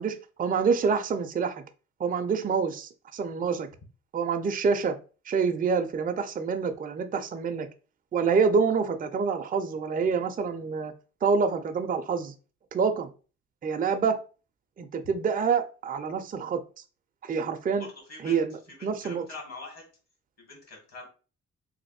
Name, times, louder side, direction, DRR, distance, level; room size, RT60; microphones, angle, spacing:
voice 1, 0.0-1.6 2.0-3.7 4.1-5.0 5.3-7.7 8.1-10.9 11.2-12.3 12.7-13.1 13.6-14.2 14.8-16.6 17.2-17.9 18.2-19.3, right 5 dB, 30° right, 7 dB, 0.5 m, -27 dB
voice 2, 17.8-18.4 18.8-19.8 20.4-21.1, left 3 dB, 55° left, 2 dB, 2.1 m, -44 dB
3.2 x 2.6 x 4.2 m, 0.36 s
cardioid pair, 90°, 30 cm